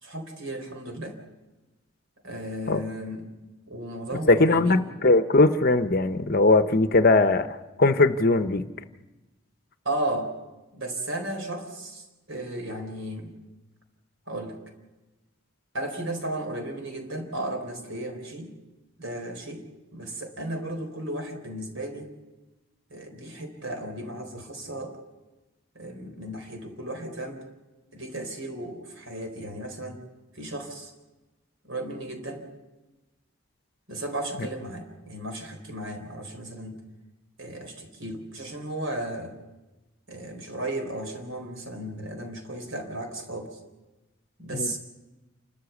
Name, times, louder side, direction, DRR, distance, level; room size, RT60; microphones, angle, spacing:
voice 1, 0.0-1.2 2.2-3.3 3.7-4.8 9.8-10.3 10.7-13.3 14.3-14.6 15.7-18.5 19.0-19.6 19.9-22.1 22.9-25.0 25.7-27.4 27.9-30.0 30.3-30.9 31.6-32.5 33.9-36.8 37.4-39.4 40.1-43.6 44.4-44.8, right 1 dB, 70° right, 5 dB, 4.0 m, -34 dB
voice 2, 4.3-7.5 7.8-8.6 44.5-44.7, left 2 dB, 45° left, 10 dB, 0.8 m, -20 dB
29.0 x 13.0 x 7.1 m, 1.1 s
head